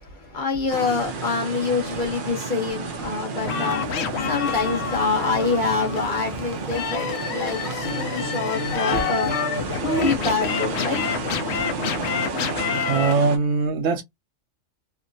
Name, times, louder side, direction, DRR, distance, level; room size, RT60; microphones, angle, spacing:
voice 1, 0.0-9.3 9.8-11.0, left 4 dB, 40° left, 1.2 m, -26 dB
sound 1, 0.7-13.4, right 4 dB, 55° right, 0.6 m, -32 dB
sound 2, 3.4-13.1, left 6 dB, 65° left, 0.8 m, -28 dB
voice 2, 12.9-14.0, right 4 dB, 75° right, 1.0 m, -22 dB
3.0 x 2.1 x 2.6 m
omnidirectional pair, 1.3 m